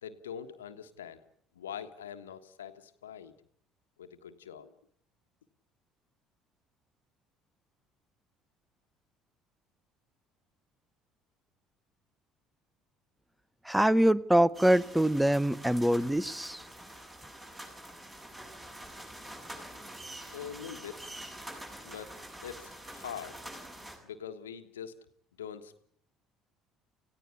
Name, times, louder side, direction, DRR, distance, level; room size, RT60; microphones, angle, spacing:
voice 1, 0.0-1.2 1.5-3.3 4.0-4.8 20.2-21.1 21.8-23.5 24.0-24.9 25.4-25.8, left 8 dB, 75° left, 9 dB, 1.4 m, -43 dB
voice 2, 13.6-16.6, right 1 dB, 5° right, 21 dB, 0.9 m, -24 dB
sound 1, 14.5-24.0, right 1 dB, 20° right, 7.2 m, -46 dB
20.0 x 16.0 x 8.5 m, 0.63 s
figure-of-eight pair, 55°, 0 cm